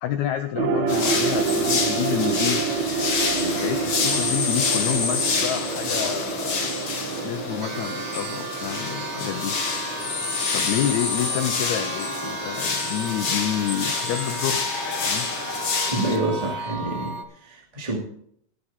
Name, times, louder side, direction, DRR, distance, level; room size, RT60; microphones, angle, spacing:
voice 1, 0.0-2.6 3.3-6.7 7.2-9.5 10.5-14.7 15.0-15.3, left 11 dB, 80° left, 9 dB, 1.7 m, -29 dB
sound 1, 0.6-12.8 13.1-13.2, right 5 dB, 65° right, 2.1 m, -29 dB
sound 2, 0.9-16.2, left 4 dB, 45° left, 2.3 m, -27 dB
sound 3, 7.6-17.2, right 3 dB, 85° right, 0.9 m, -35 dB
voice 2, 15.9-18.0, right 2 dB, 15° right, -2 dB, 1.7 m, -27 dB
20.0 x 7.3 x 3.6 m, 0.65 s
omnidirectional pair, 4.0 m